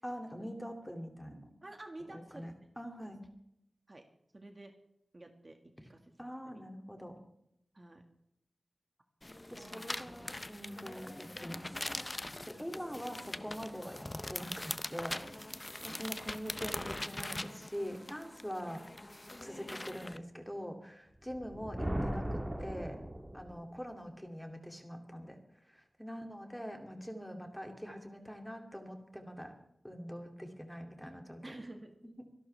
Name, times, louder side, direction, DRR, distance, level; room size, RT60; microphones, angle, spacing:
voice 1, 0.0-1.5 2.1-3.2 6.2-7.1 9.5-12.0 12.5-18.8 19.4-23.0 23.3-25.4 25.7-29.5 29.8-31.6 32.2-32.3, equal, 5° left, 3 dB, 2.6 m, -44 dB
voice 2, 1.6-2.5 3.0-3.1 3.9-4.0 4.3-4.7 5.1-5.6 5.9-6.1 6.5-6.6 7.7-8.0 9.5-9.9 12.6-12.8 15.9-16.0 26.1-26.4 30.2-30.3 31.4-32.0, right 2 dB, 35° right, 4 dB, 1.9 m, -50 dB
sound 1, 9.2-20.2, left 1 dB, 20° left, 0.6 m, -42 dB
Thunder, 21.3-23.7, right 1 dB, 15° right, 1.7 m, -38 dB
25.5 x 11.5 x 3.4 m, 0.77 s
wide cardioid pair, 90°, 0 cm